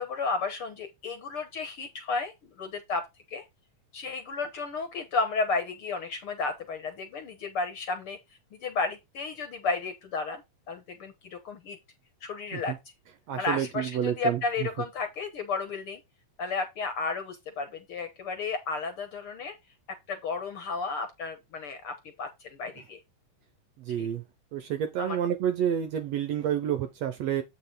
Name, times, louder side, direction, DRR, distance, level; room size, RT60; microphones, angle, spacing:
voice 1, 0.0-3.0 3.3-3.4 3.9-8.2 8.5-11.8 12.2-12.7 13.4-16.0 16.4-19.6 20.1-23.0 24.0-24.1 25.0-25.2, left 4 dB, 55° left, 1.6 m, -33 dB
voice 2, 13.3-14.7 22.8-22.9 23.8-24.2 24.5-27.4, right 9 dB, 70° right, 1.7 m, -29 dB
8.0 x 5.1 x 3.9 m
omnidirectional pair, 3.7 m